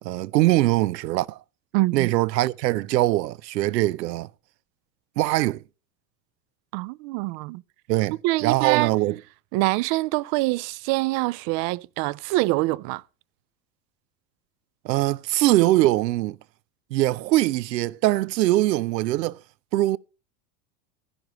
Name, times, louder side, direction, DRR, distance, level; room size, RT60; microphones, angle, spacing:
voice 1, 0.0-1.4 1.9-4.3 5.2-5.6 7.9-8.2 8.4-9.2 14.8-16.4 16.9-19.4 19.7-20.0, right 17 dB, 90° right, 0.7 m, -22 dB
voice 2, 1.7-2.1 6.7-7.6 8.2-8.9 9.5-13.0, right 21 dB, 50° right, 0.6 m, -25 dB
16.0 x 11.0 x 3.0 m
hypercardioid pair, 105°, 49 cm